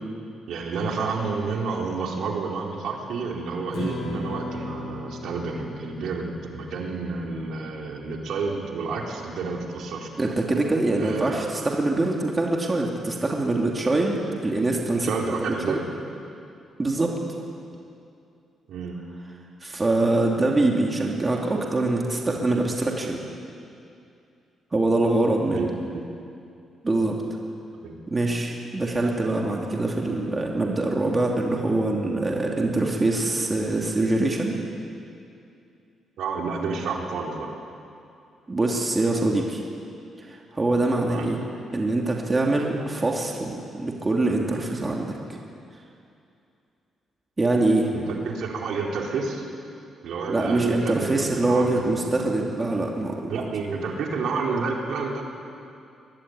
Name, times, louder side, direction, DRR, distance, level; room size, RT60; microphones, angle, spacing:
voice 1, 0.5-10.1 11.0-11.5 15.0-15.8 18.7-19.0 25.5-26.0 27.8-27.9 36.2-37.5 41.1-41.3 47.9-49.4 50.0-52.1 53.3-55.2, right 4 dB, 75° right, 0 dB, 4.5 m, -30 dB
Strum, 3.7-10.0, left 2 dB, 65° left, 7.0 m, -38 dB
voice 2, 10.2-15.8 16.8-17.1 19.6-23.2 24.7-25.7 26.8-27.2 28.1-34.6 38.5-39.6 40.2-41.4 41.7-45.2 47.4-47.9 50.3-53.5, right 2 dB, 20° right, 0 dB, 2.8 m, -24 dB
25.0 x 21.0 x 9.8 m, 2.5 s
cardioid pair, 145°, 0 cm